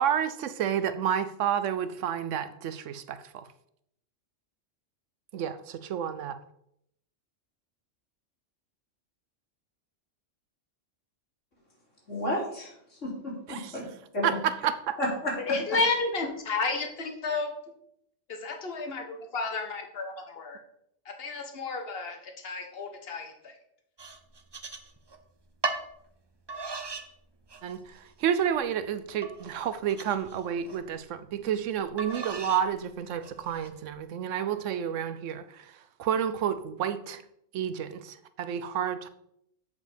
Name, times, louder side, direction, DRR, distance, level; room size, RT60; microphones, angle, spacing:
voice 1, 0.0-3.5 5.3-6.4 13.5-13.7 14.2-15.0 27.6-35.7 36.0-37.2 37.5-39.1, right 9 dB, 80° right, 1.0 m, -30 dB
voice 2, 12.1-12.7 13.0-13.8 14.1-14.4 15.0-15.6, left 1 dB, 75° left, 3.2 m, -31 dB
voice 3, 15.5-17.5 18.3-20.6 21.0-23.5, left 3 dB, 50° left, 1.4 m, -31 dB
sound 1, 24.0-25.2 25.6-25.9 26.5-27.1 27.5-28.0 28.5-28.6 29.2-30.8 32.0-32.7 33.2-33.7, right 3 dB, 30° right, 0.5 m, -37 dB
8.0 x 5.3 x 5.1 m
omnidirectional pair, 1.3 m